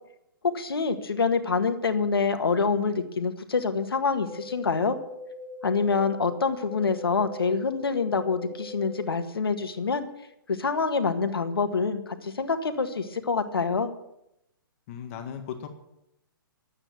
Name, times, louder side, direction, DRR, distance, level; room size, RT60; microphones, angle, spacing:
voice 1, 0.5-5.0 5.6-10.1 10.5-13.9, left 4 dB, 90° left, 8 dB, 1.8 m, -26 dB
sound 1, 4.1-9.1, left 2 dB, 20° right, 3.7 m, -41 dB
voice 2, 14.9-15.7, left 8 dB, 35° left, 5 dB, 1.8 m, -36 dB
12.5 x 8.7 x 9.0 m, 0.84 s
hypercardioid pair, 140°, 12 cm